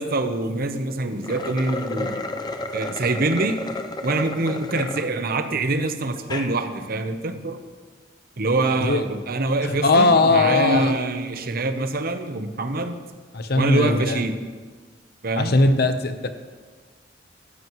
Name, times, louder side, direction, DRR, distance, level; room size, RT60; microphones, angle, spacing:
voice 1, 0.0-2.2 2.7-3.6 4.0-7.6 8.4-13.0 13.5-14.4 15.2-15.5, right 2 dB, 55° right, 8 dB, 0.8 m, -25 dB
sound 1, 1.1-5.1 5.6-5.7 6.2-6.5, left 2 dB, 25° left, 0.6 m, -31 dB
voice 2, 9.6-10.9 13.3-14.2 15.4-16.3, left 3 dB, 60° left, 8 dB, 0.9 m, -19 dB
15.5 x 12.5 x 3.1 m, 1.4 s
head